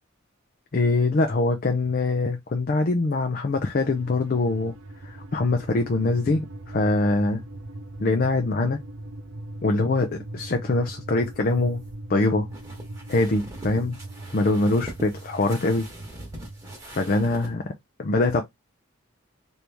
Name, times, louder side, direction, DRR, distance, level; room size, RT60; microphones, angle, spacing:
voice 1, 0.7-4.7 5.0-7.4 8.0-8.8 9.6-11.8 12.1-12.5 13.1-14.0 14.3-15.9 16.9-17.7 18.0-18.4, left 2 dB, 45° left, 0.4 m, -23 dB
sound 1, 3.5-16.8, right 1 dB, 70° right, 0.7 m, -40 dB
sound 2, 11.2-17.5, right 1 dB, 15° right, 1.2 m, -42 dB
3.0 x 2.7 x 3.4 m
head